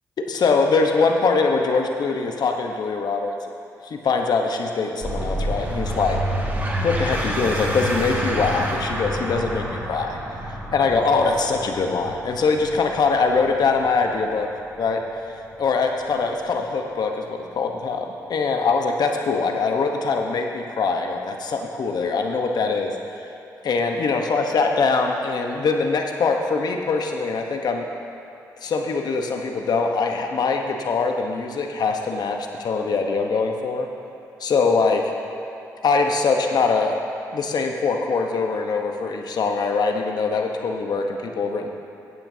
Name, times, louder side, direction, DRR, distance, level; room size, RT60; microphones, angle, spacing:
voice 1, 0.2-3.4 3.8-6.2 6.8-10.2 10.5-14.5 14.8-15.0 15.6-22.9 23.6-27.9 28.6-33.9 34.4-35.1 35.8-37.0 37.3-41.7, left 4 dB, 65° left, 3 dB, 1.0 m, -23 dB
sound 1, 5.0-16.1, equal, 25° right, 1.9 m, -28 dB
15.5 x 8.8 x 2.8 m, 2.8 s
supercardioid pair, 55°, 8 cm